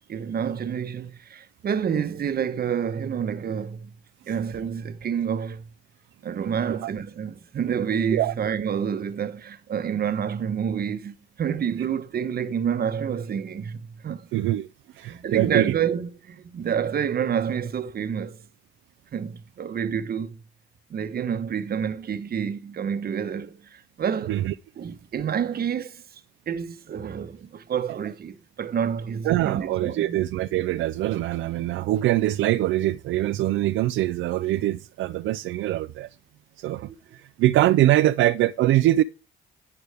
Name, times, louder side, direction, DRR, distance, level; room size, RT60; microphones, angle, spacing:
voice 1, 0.1-3.9 4.3-5.7 6.2-14.3 15.0-18.4 19.1-20.4 20.9-24.4 24.8-26.0 26.5-30.2 36.9-37.0, right 7 dB, 50° right, 1.1 m, -28 dB
voice 2, 14.3-14.7 15.0-15.8 24.3-24.5 29.2-36.1 36.6-39.0, right 14 dB, 80° right, 0.4 m, -23 dB
11.0 x 9.7 x 3.4 m
cardioid pair, 90°, 20 cm